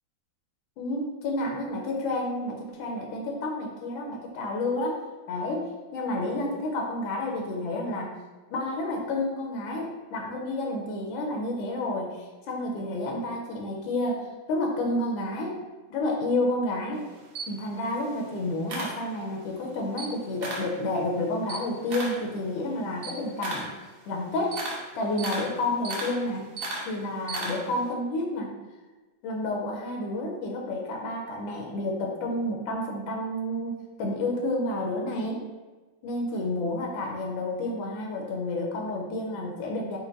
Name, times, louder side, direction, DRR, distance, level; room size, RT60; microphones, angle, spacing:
voice 1, 0.8-5.0 5.3-8.1 8.5-15.6 15.9-17.0 17.5-23.7 24.1-24.6 24.9-26.5 26.9-28.5 29.2-35.4 36.0-40.0, left 1 dB, 80° left, 0 dB, 1.4 m, -30 dB
Camera, 16.9-19.5 19.9-20.8 21.1-27.9, right 2 dB, 75° right, 1.5 m, -36 dB
4.5 x 2.2 x 3.8 m, 1.2 s
omnidirectional pair, 2.1 m